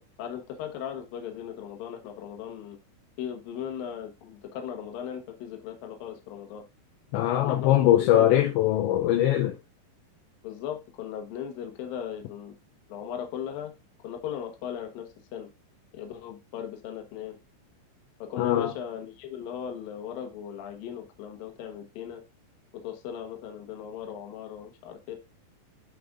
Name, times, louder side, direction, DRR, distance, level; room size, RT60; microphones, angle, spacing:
voice 1, 0.0-2.8 3.2-6.6 7.4-8.5 10.4-12.5 12.9-13.7 14.0-15.5 15.9-17.4 18.2-22.2 22.7-25.2, left 9 dB, 70° left, 2.3 m, -38 dB
voice 2, 7.1-9.6 18.4-18.7, left 12 dB, 85° left, 2.6 m, -22 dB
12.0 x 5.1 x 2.4 m
omnidirectional pair, 5.8 m